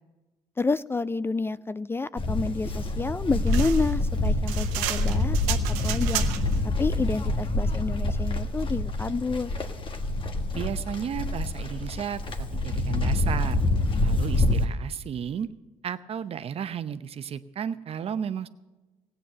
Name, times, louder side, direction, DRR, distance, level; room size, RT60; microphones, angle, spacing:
voice 1, 0.6-5.6 5.8-6.2 6.8-9.5, left 3 dB, 20° left, 17 dB, 0.3 m, -29 dB
Livestock farm animals working animals, 2.2-14.6, left 2 dB, 45° left, 1.5 m, -26 dB
sound 1, 3.5-6.6, right 12 dB, 85° right, 0.8 m, -33 dB
voice 2, 10.5-12.2 12.5-13.6 14.0-15.5 15.8-18.5, right 8 dB, 50° right, 13 dB, 0.8 m, -33 dB
16.5 x 9.0 x 6.8 m, 1.2 s
supercardioid pair, 60°, 13 cm